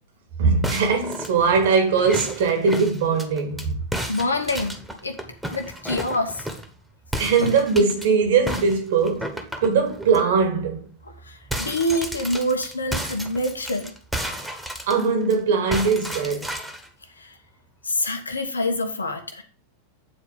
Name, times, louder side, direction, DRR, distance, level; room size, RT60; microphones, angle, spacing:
voice 1, 0.4-3.8 7.2-10.9 14.9-16.5, right 5 dB, 55° right, 2.0 m, -21 dB
sound 1, 0.6-3.7 3.9-6.7 7.1-8.1 8.5-10.2 10.6-10.8 11.1-15.3 15.7-16.9, right 1 dB, 5° right, 1.4 m, -32 dB
voice 2, 4.1-5.2 5.5-6.5 7.4-7.6 11.1-13.9 17.2-17.4 17.8-19.4, left 1 dB, 75° left, 1.2 m, -26 dB
8.9 x 4.7 x 4.8 m
figure-of-eight pair, 90°, 0 cm